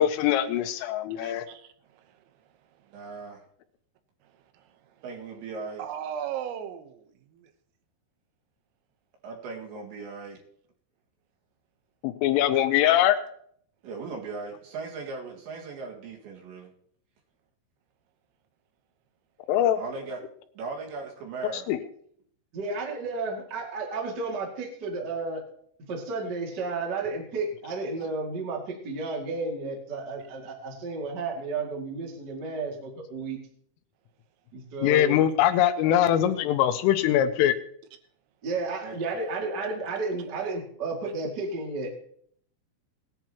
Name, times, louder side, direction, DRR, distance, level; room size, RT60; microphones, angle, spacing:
voice 1, 0.0-1.5 12.0-13.2 19.5-19.8 21.7-21.8 34.8-37.6, left 11 dB, 85° left, 9 dB, 3.2 m, -22 dB
voice 2, 1.2-2.5 2.8-3.0 4.2-5.0 5.8-7.5, right 9 dB, 80° right, 8 dB, 3.5 m, -39 dB
voice 3, 2.9-3.4 5.0-5.8 9.2-10.4 13.8-16.7 19.7-20.2 20.6-21.7 38.8-39.0, right 4 dB, 65° right, -1 dB, 3.8 m, -38 dB
voice 4, 22.5-25.4 25.9-33.4 34.5-35.2 38.4-41.9, right 3 dB, 50° right, -1 dB, 1.2 m, -32 dB
18.5 x 10.5 x 2.9 m, 0.64 s
omnidirectional pair, 5.9 m